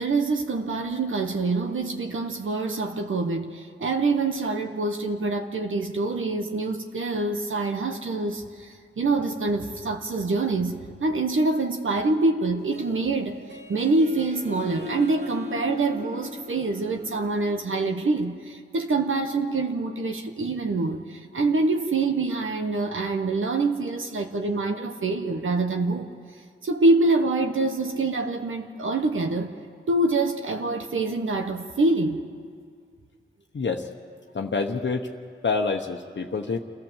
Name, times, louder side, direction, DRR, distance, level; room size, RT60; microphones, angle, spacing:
voice 1, 0.0-13.4 13.7-26.1 26.6-29.6 29.9-32.2, right 3 dB, 75° right, 4 dB, 1.2 m, -25 dB
Harp, 12.6-18.1, left 3 dB, 55° right, 2.6 m, -40 dB
voice 2, 33.5-33.9 34.3-35.1 35.4-36.6, left 4 dB, 60° left, 2 dB, 1.1 m, -27 dB
28.0 x 14.0 x 7.4 m, 2.1 s
cardioid pair, 45°, 21 cm